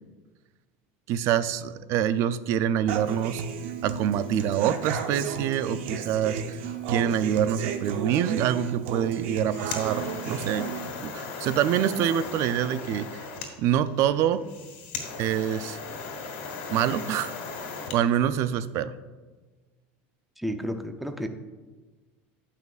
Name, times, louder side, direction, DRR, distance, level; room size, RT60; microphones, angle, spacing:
voice 1, 1.1-3.4 3.8-6.6 6.9-10.7 11.0-13.2 13.6-14.4 15.2-15.8 16.7-17.4 17.9-18.9, right 10 dB, 50° right, 14 dB, 0.4 m, -26 dB
Human voice / Acoustic guitar, 2.9-10.9, right 7 dB, 80° right, 0.8 m, -33 dB
sound 1, 9.2-18.0, left 4 dB, 75° left, 1.9 m, -37 dB
voice 2, 20.4-21.3, equal, ahead, 6 dB, 0.5 m, -31 dB
15.5 x 5.7 x 2.4 m, 1.3 s
supercardioid pair, 140°, 6 cm